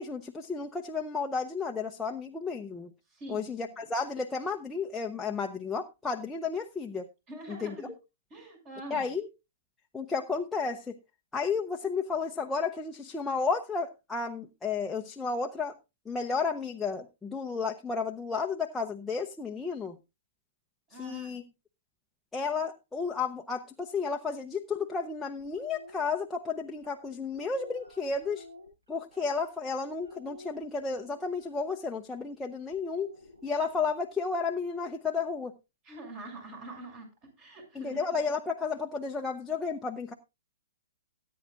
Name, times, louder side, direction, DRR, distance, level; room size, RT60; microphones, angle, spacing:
voice 1, 0.0-2.9 3.3-7.0 7.5-7.7 8.9-9.3 9.9-10.9 11.3-15.7 16.1-20.0 20.9-21.4 22.3-28.5 28.9-33.1 33.4-35.5 37.7-40.1, left 5 dB, 10° left, 1 dB, 0.7 m, -32 dB
voice 2, 3.1-3.4 3.8-3.9 7.3-7.9 8.3-9.1 20.9-21.4 35.8-37.1 37.4-38.0, right 2 dB, 30° right, 4 dB, 6.6 m, -44 dB
sound 1, 25.4-26.0 26.8-29.7 30.0-31.5 32.7-34.1, left 2 dB, 80° right, 7.6 m, -51 dB
18.0 x 9.3 x 2.4 m, 0.26 s
hypercardioid pair, 130°, 0 cm